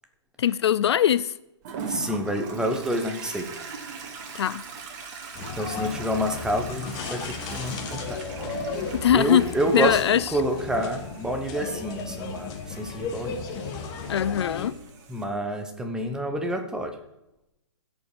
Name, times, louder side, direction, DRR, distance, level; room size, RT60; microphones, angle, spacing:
voice 1, 0.4-1.3 4.3-4.6 8.9-10.3 14.1-14.7, left 10 dB, 65° left, 0.4 m, -22 dB
Toilet flush, 1.6-15.2, right 4 dB, 40° right, 1.9 m, -41 dB
voice 2, 1.9-3.5 5.4-8.8 9.1-13.4 15.1-16.9, right 1 dB, 5° right, 1.0 m, -28 dB
sound 1, 5.4-14.7, left 5 dB, 25° left, 1.3 m, -35 dB
16.0 x 5.4 x 5.0 m
hypercardioid pair, 140°, 15 cm